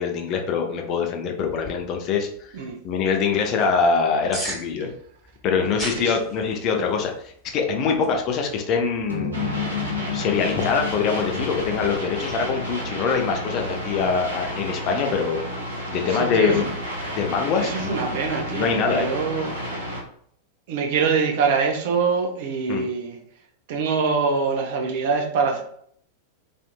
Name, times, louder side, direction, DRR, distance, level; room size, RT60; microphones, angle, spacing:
voice 1, 0.0-2.5 2.8-4.9 5.4-9.4 10.1-15.4 15.9-16.7 17.1-18.2 18.5-19.1 22.7-22.9, left 5 dB, 35° left, 3 dB, 0.5 m, -24 dB
sound 1, 1.4-12.0, right 1 dB, 5° right, 1.3 m, -41 dB
sound 2, 9.1-13.7, left 7 dB, 90° left, 0.7 m, -32 dB
sound 3, 9.3-20.0, equal, 80° right, 0.9 m, -31 dB
voice 2, 16.1-16.6 17.6-19.6 20.7-23.2 23.7-25.6, right 5 dB, 50° right, 2 dB, 0.6 m, -24 dB
2.6 x 2.5 x 2.2 m, 0.63 s
figure-of-eight pair, 90°, 0 cm